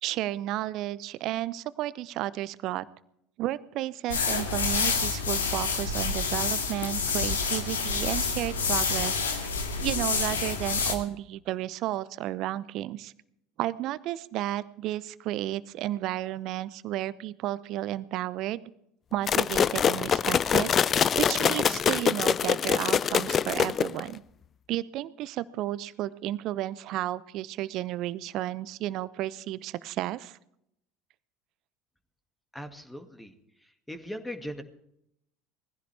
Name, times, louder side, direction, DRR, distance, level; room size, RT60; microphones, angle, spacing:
voice 1, 0.0-2.8 3.4-9.5 9.8-13.1 13.6-18.6 19.1-20.7 21.2-24.2 24.7-30.4, right 14 dB, 55° right, 17 dB, 0.7 m, -32 dB
sound 1, 4.1-11.0, left 5 dB, 80° left, 2.1 m, -28 dB
sound 2, 19.3-24.1, left 7 dB, 35° left, 0.4 m, -24 dB
voice 2, 32.5-33.3 33.9-34.6, equal, 5° left, 7 dB, 2.1 m, -39 dB
20.5 x 15.5 x 3.4 m, 0.75 s
figure-of-eight pair, 70°, 0 cm